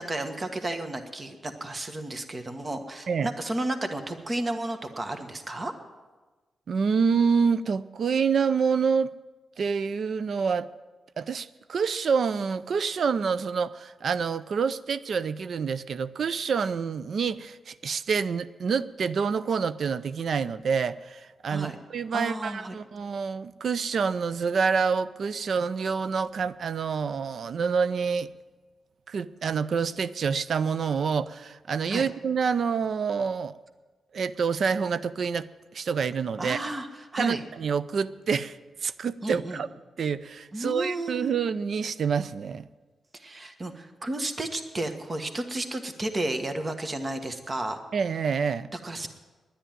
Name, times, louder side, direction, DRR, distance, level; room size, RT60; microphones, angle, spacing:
voice 1, 0.0-5.7 21.5-21.8 22.1-22.8 31.9-32.1 36.4-37.4 39.2-39.6 40.5-41.4 43.1-47.8 48.7-49.1, right 1 dB, 35° right, 7 dB, 1.4 m, -32 dB
voice 2, 6.7-9.1 9.6-10.7 11.2-28.3 29.1-33.5 34.1-35.5 35.7-36.6 37.2-38.6 38.8-39.7 40.0-42.7 47.9-48.7, right 6 dB, 65° right, 16 dB, 0.5 m, -27 dB
10.0 x 10.0 x 9.2 m, 1.3 s
supercardioid pair, 50°, 0 cm